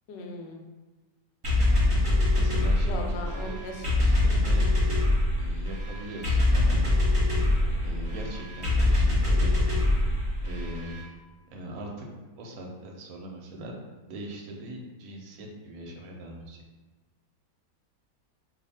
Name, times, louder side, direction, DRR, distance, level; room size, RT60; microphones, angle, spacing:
voice 1, 0.1-0.6 2.8-3.8, left 1 dB, 85° left, 2 dB, 1.2 m, -37 dB
sound 1, 1.4-11.0, left 2 dB, 25° right, 0.8 m, -24 dB
voice 2, 2.3-3.5 3.8-4.6 5.4-6.9 7.8-9.6 10.4-11.0 11.5-12.1 12.4-13.7 14.1-16.6, right 1 dB, 65° right, 0 dB, 0.9 m, -41 dB
2.7 x 2.4 x 4.1 m, 1.2 s
omnidirectional pair, 1.9 m